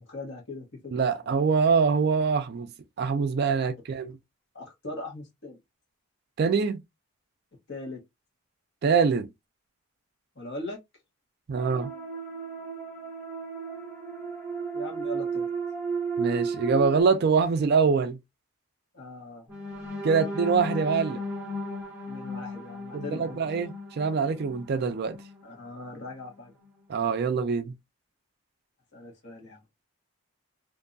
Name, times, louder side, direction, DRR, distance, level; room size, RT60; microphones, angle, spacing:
voice 1, 0.0-1.4 3.4-3.7 4.5-5.6 7.7-8.0 10.3-10.8 14.7-15.5 18.9-19.5 22.1-23.4 25.4-26.5 28.9-29.6, left 2 dB, 50° left, 1.0 m, -40 dB
voice 2, 0.9-2.7 3.0-4.1 6.4-6.8 8.8-9.3 11.5-11.9 16.2-18.2 20.0-21.2 22.9-25.2 26.9-27.7, right 5 dB, 45° right, 0.3 m, -24 dB
sound 1, 11.5-17.0, right 5 dB, 10° left, 0.8 m, -33 dB
sound 2, 19.5-25.4 25.9-26.1 26.4-26.7, left 2 dB, 10° right, 1.0 m, -37 dB
2.5 x 2.2 x 2.5 m
head